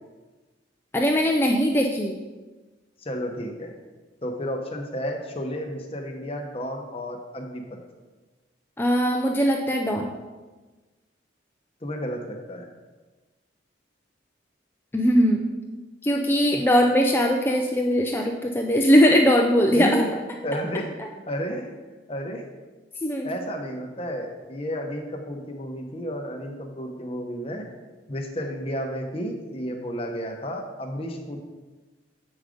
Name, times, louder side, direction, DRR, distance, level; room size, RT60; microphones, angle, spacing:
voice 1, 0.9-2.2 8.8-10.1 14.9-15.4 16.0-20.0 23.0-23.3, equal, 10° left, 1 dB, 0.4 m, -20 dB
voice 2, 3.0-3.7 4.2-7.8 11.8-12.7 19.7-20.1 20.4-20.9 21.3-21.7 22.1-22.4 23.2-27.7 28.1-31.4, equal, 30° left, 2 dB, 0.9 m, -32 dB
7.2 x 5.1 x 5.0 m, 1.3 s
head